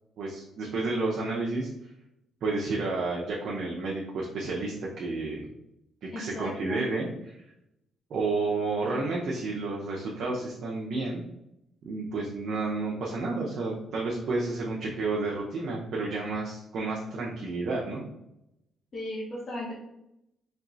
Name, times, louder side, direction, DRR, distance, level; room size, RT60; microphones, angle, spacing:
voice 1, 0.2-1.7 2.4-5.4 6.0-7.4 8.1-11.2 11.8-18.0, right 3 dB, 65° right, -3 dB, 0.7 m, -31 dB
voice 2, 6.1-6.8 18.9-19.7, left 1 dB, 45° left, -6 dB, 1.0 m, -36 dB
4.3 x 3.0 x 2.6 m, 0.84 s
cardioid pair, 90°, 0 cm